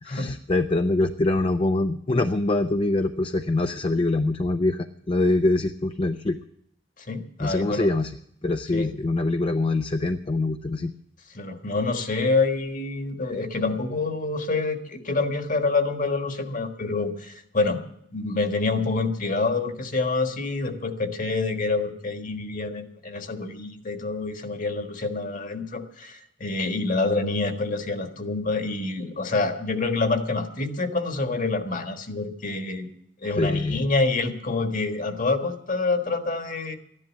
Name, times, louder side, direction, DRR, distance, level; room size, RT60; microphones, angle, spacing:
voice 1, 0.0-6.4 7.4-8.1 8.4-10.9 33.4-33.9, left 2 dB, 30° left, 8 dB, 0.5 m, -24 dB
voice 2, 7.0-7.9 8.7-8.9 11.3-17.8 18.1-32.9 33.2-36.8, left 3 dB, 45° left, 6 dB, 1.5 m, -27 dB
13.5 x 11.0 x 7.3 m, 0.72 s
head